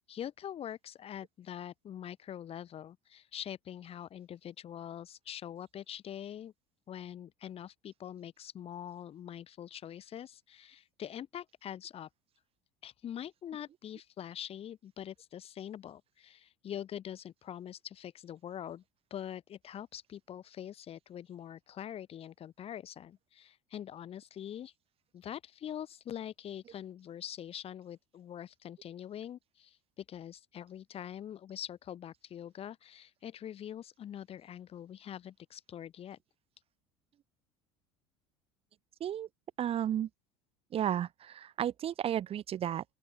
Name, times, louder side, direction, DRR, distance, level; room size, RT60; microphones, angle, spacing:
voice 1, 0.1-6.5 6.9-12.1 12.8-18.8 19.1-24.7 25.1-36.2, left 10 dB, 45° left, 5.1 m, -44 dB
voice 2, 39.6-40.1 40.7-42.8, right 10 dB, 45° right, 1.7 m, -33 dB
open air
hypercardioid pair, 80°, 14 cm